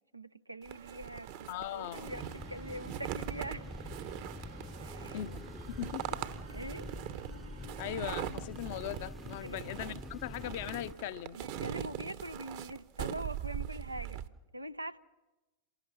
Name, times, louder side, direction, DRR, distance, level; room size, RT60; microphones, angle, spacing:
voice 1, 0.1-3.6 4.8-5.2 6.5-6.9 9.4-9.6 11.3-14.2 14.5-15.0, right 1 dB, 85° right, 0.7 m, -43 dB
sound 1, 0.7-14.3, right 11 dB, 50° right, 1.1 m, -41 dB
sound 2, 0.7-8.0, right 5 dB, 65° right, 1.6 m, -54 dB
voice 2, 1.5-2.1 5.1-6.2 7.8-11.4, left 12 dB, 50° left, 0.8 m, -39 dB
sound 3, 2.1-10.9, left 1 dB, 5° left, 0.7 m, -46 dB
28.0 x 17.0 x 6.5 m
figure-of-eight pair, 90°, 0 cm